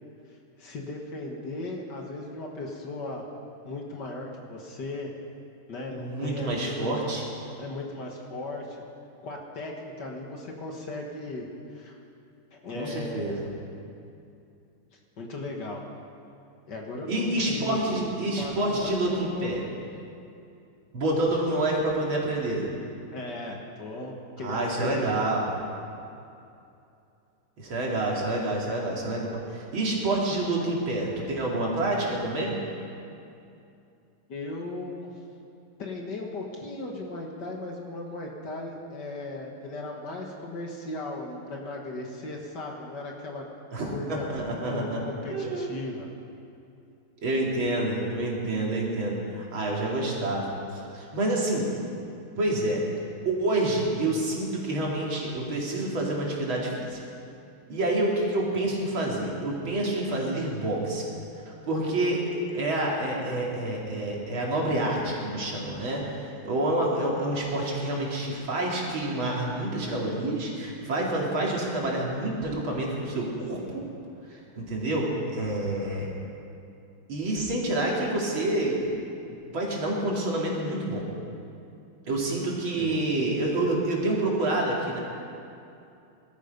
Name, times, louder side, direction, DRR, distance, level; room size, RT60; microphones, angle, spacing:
voice 1, 0.6-3.2 3.7-5.1 5.7-7.0 7.6-8.8 9.2-11.5 11.7-12.0 12.5-13.4 15.2-15.8 16.7-19.6 23.1-25.2 34.3-35.1 35.8-43.4 43.9-44.3 44.7-46.1 82.8-83.0, left 2 dB, 55° left, 0 dB, 2.1 m, -37 dB
voice 2, 5.9-7.2 12.7-13.5 17.1-19.6 20.9-22.7 24.4-25.5 27.6-32.6 43.7-45.0 45.3-45.7 47.2-51.7 52.4-52.8 53.2-57.0 57.7-61.0 61.7-62.2 62.5-73.8 74.3-76.1 77.1-79.1 79.5-81.0 82.1-85.0, right 1 dB, 65° right, -3 dB, 3.4 m, -28 dB
20.0 x 13.0 x 5.3 m, 2.6 s
omnidirectional pair, 2.4 m